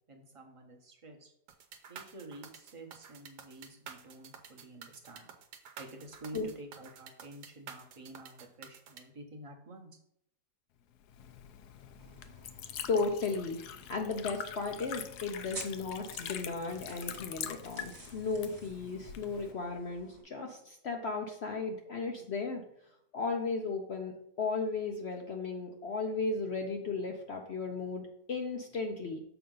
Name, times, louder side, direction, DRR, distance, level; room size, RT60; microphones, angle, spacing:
voice 1, 0.1-1.3 1.9-5.3 5.8-10.0, right 2 dB, 25° right, 2 dB, 0.9 m, -50 dB
sound 1, 1.5-9.0, right 7 dB, 75° right, 1.3 m, -50 dB
Liquid, 11.0-19.5, left 9 dB, 75° left, 1.1 m, -44 dB
sound 2, 12.0-20.2, right 2 dB, 40° right, 1.7 m, -52 dB
voice 2, 12.9-13.6 13.9-22.6 23.1-29.2, left 4 dB, 60° left, 3 dB, 0.7 m, -35 dB
7.0 x 5.2 x 3.8 m, 0.74 s
omnidirectional pair, 1.8 m